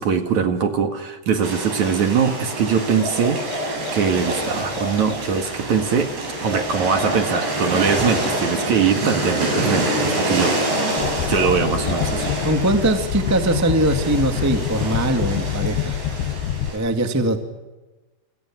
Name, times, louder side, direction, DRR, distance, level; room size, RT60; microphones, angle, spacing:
voice 1, 0.0-6.1 6.4-10.6 11.3-12.3, right 6 dB, 55° right, 6 dB, 2.9 m, -22 dB
sound 1, 1.4-16.8, right 1 dB, 75° right, 9.7 m, -27 dB
sound 2, 2.8-5.3 6.3-8.8 9.9-12.5, left 1 dB, 35° right, 8.3 m, -32 dB
sound 3, 11.0-16.7, left 11 dB, 90° left, 3.3 m, -26 dB
voice 2, 12.4-15.9 16.7-17.4, right 1 dB, 10° right, 5 dB, 1.1 m, -21 dB
29.5 x 27.5 x 6.4 m, 1.2 s
omnidirectional pair, 4.8 m